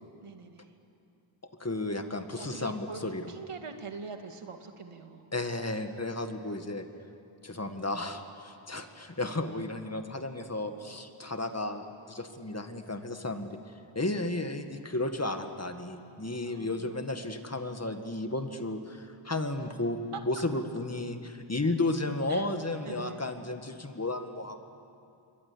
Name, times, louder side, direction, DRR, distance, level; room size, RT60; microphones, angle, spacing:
voice 1, 0.2-0.8 2.1-3.0 3.3-5.3 16.5-17.0 20.1-20.2 22.3-22.5 22.9-23.3, right 4 dB, 90° right, 5 dB, 2.1 m, -43 dB
voice 2, 1.6-3.3 5.3-6.9 7.4-13.5 14.0-24.8, left 2 dB, 30° left, 7 dB, 2.0 m, -33 dB
28.0 x 22.5 x 8.8 m, 2.6 s
wide cardioid pair, 65°, 50 cm